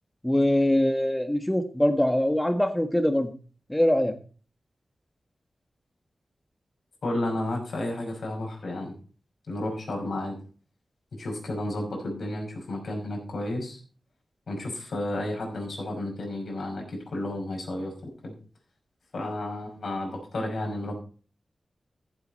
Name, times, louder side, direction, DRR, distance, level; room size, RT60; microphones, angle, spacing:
voice 1, 0.2-3.3 3.7-4.1, left 1 dB, 10° left, 7 dB, 1.6 m, -23 dB
voice 2, 7.0-8.9 9.5-10.4 11.1-13.8 14.5-17.9 18.2-18.3 19.1-20.9, left 1 dB, 75° left, 1 dB, 5.5 m, -32 dB
14.5 x 8.1 x 4.3 m, 0.38 s
wide cardioid pair, 90°, 0 cm